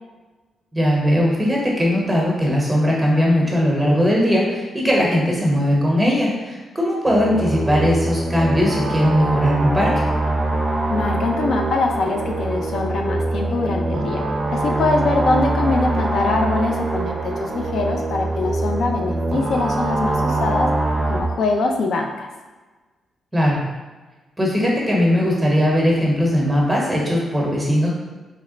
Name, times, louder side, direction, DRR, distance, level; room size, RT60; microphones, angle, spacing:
voice 1, 0.7-10.0 23.3-23.6 24.4-27.9, equal, 10° right, -3 dB, 0.8 m, -19 dB
sound 1, 7.1-21.2, right 2 dB, 30° right, 0.5 m, -23 dB
voice 2, 10.9-14.2 14.5-20.7 21.1-22.3, left 3 dB, 70° left, 2 dB, 0.3 m, -23 dB
3.0 x 2.1 x 3.7 m, 1.3 s
cardioid pair, 110°, 0 cm